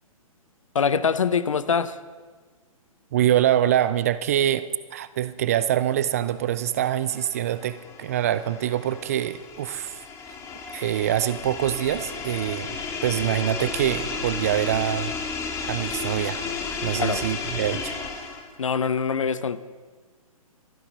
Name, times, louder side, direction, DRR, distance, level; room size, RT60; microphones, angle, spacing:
voice 1, 0.7-2.0 16.9-17.2 18.6-19.6, left 6 dB, 60° left, 16 dB, 0.8 m, -24 dB
voice 2, 3.1-10.0 10.7-15.1 15.6-16.4 16.8-17.9, right 11 dB, 25° right, 15 dB, 0.3 m, -25 dB
sound 1, 6.7-18.6, left 5 dB, 15° left, 1.4 m, -33 dB
25.0 x 9.8 x 4.1 m, 1.5 s
figure-of-eight pair, 125°, 19 cm